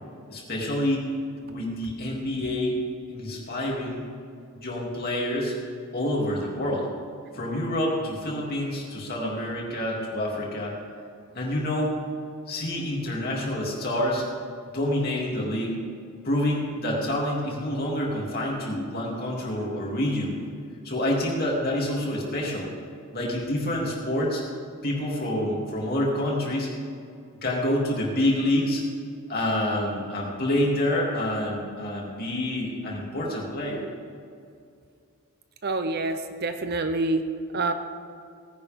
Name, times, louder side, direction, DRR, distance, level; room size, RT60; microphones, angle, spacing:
voice 1, 0.3-1.1 1.5-2.8 3.1-4.0 4.5-5.6 5.9-6.9 7.3-10.7 11.3-12.0 12.5-14.2 14.7-15.8 16.2-20.4 20.8-22.7 23.1-24.4 24.8-26.7 27.4-28.8 29.3-33.8, left 1 dB, 45° left, -3 dB, 2.9 m, -27 dB
voice 2, 35.6-37.3 37.5-37.7, right 2 dB, 45° right, 8 dB, 0.7 m, -26 dB
18.0 x 10.5 x 3.7 m, 2.4 s
head